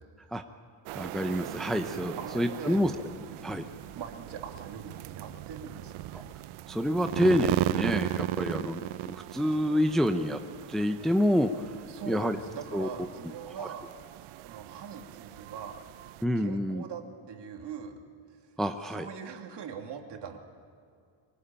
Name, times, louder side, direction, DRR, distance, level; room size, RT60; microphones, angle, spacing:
voice 1, 0.9-2.9 3.4-3.7 6.1-6.2 6.7-10.4 10.7-11.7 12.1-12.4 12.7-12.9 13.6-13.7 16.2-16.8 18.6-19.1, equal, ahead, 6 dB, 0.7 m, -28 dB
sound 1, 0.9-16.2, right 15 dB, 75° right, 0.8 m, -37 dB
voice 2, 2.2-3.1 3.9-6.3 11.9-13.9 14.4-15.8 16.4-18.0 18.3-18.5 18.9-20.4, right 7 dB, 55° right, 3 dB, 2.8 m, -42 dB
24.5 x 19.0 x 8.9 m, 2.3 s
cardioid pair, 130°, 50 cm